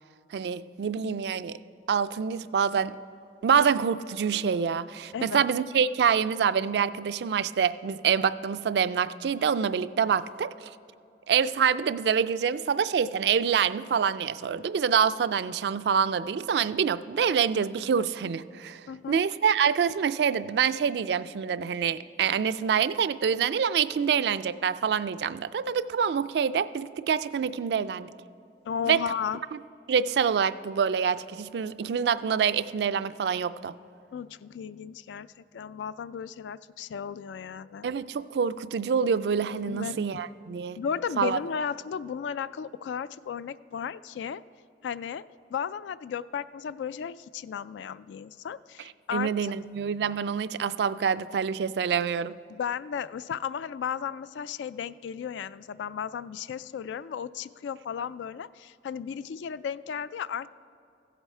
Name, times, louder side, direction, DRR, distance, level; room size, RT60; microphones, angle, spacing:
voice 1, 0.3-1.6 1.9-3.0 3.4-10.7 11.3-18.8 19.1-28.1 28.8-29.0 29.5-29.6 29.9-33.7 37.8-40.8 41.2-41.4 49.1-52.3, right 7 dB, 65° right, 14 dB, 0.3 m, -26 dB
voice 2, 5.1-5.5 10.0-10.1 18.9-19.2 28.7-29.4 34.1-35.3 35.5-37.9 39.7-40.2 40.8-44.4 44.8-45.2 45.5-49.5 52.5-60.5, left 7 dB, 85° left, 17 dB, 0.3 m, -34 dB
15.0 x 8.1 x 4.3 m, 2.6 s
head